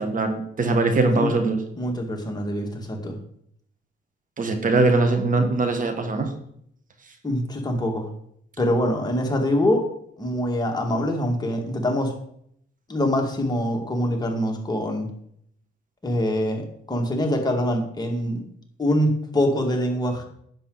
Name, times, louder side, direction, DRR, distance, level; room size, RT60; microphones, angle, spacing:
voice 1, 0.0-1.6 4.4-6.3, right 3 dB, 40° right, 7 dB, 1.4 m, -21 dB
voice 2, 1.0-1.3 1.8-3.2 7.2-8.1 8.6-9.9 10.2-12.1 12.9-15.1 16.0-18.4 18.8-20.2, left 1 dB, 20° left, 1 dB, 2.1 m, -24 dB
10.5 x 7.2 x 4.0 m, 0.69 s
cardioid pair, 90°, 20 cm